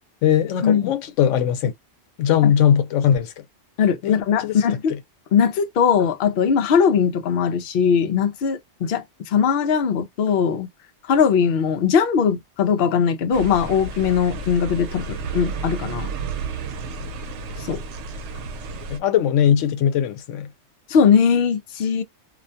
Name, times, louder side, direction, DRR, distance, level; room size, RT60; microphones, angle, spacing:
voice 1, 0.2-1.7 2.2-3.3 4.0-4.6 18.9-20.5, left 9 dB, 90° left, 1.0 m, -20 dB
voice 2, 3.8-4.9 5.3-10.7 11.1-16.1 17.7-17.8 20.9-22.0, left 7 dB, 60° left, 0.7 m, -20 dB
sound 1, 13.3-19.0, right 4 dB, 75° right, 0.9 m, -32 dB
2.4 x 2.2 x 2.6 m
omnidirectional pair, 1.2 m